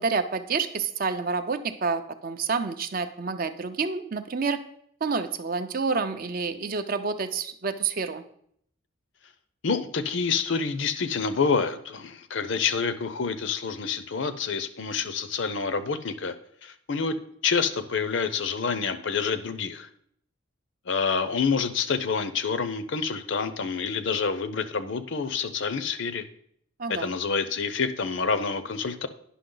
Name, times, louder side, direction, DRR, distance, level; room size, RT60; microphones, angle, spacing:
voice 1, 0.0-4.6 5.0-8.2 26.8-27.1, right 4 dB, 40° right, 10 dB, 0.5 m, -28 dB
voice 2, 9.6-16.3 16.6-17.1 17.4-19.9 20.9-26.2 26.9-29.1, left 5 dB, 60° left, 12 dB, 0.6 m, -27 dB
10.0 x 5.8 x 3.8 m, 0.67 s
head